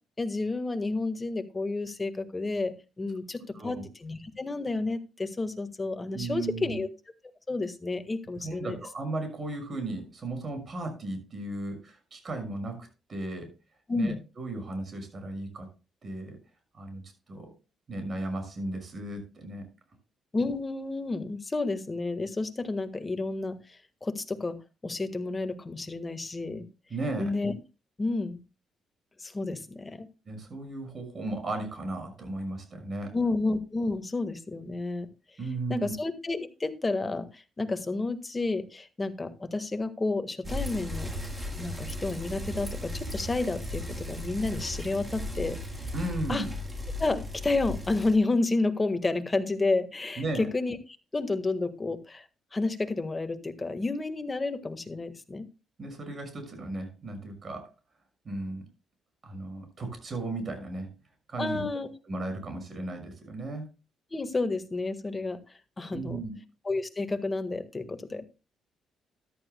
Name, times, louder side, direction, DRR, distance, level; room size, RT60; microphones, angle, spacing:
voice 1, 0.2-6.9 7.5-8.8 13.9-14.2 20.3-24.5 24.8-26.6 27.2-27.5 28.0-28.4 29.2-30.1 33.1-35.1 35.7-41.1 41.6-45.9 46.3-46.4 47.0-50.8 51.1-52.2 52.5-55.4 61.4-61.9 64.1-65.4 65.8-66.2 66.6-68.2, left 3 dB, 25° left, 9 dB, 1.5 m, -30 dB
voice 2, 3.5-3.8 6.1-6.8 8.4-13.5 13.9-15.7 16.0-16.4 16.7-17.0 17.3-17.5 17.9-19.7 26.9-27.4 30.3-33.1 35.4-35.9 45.9-46.5 50.2-50.5 55.8-57.7 58.2-58.6 59.2-60.9 61.3-61.7 62.1-63.7 65.9-66.4, right 2 dB, 40° right, 5 dB, 5.9 m, -35 dB
Bicycle, 40.4-48.2, left 1 dB, 15° right, 4.0 m, -36 dB
13.5 x 11.5 x 2.2 m, 0.30 s
cardioid pair, 90°, 0 cm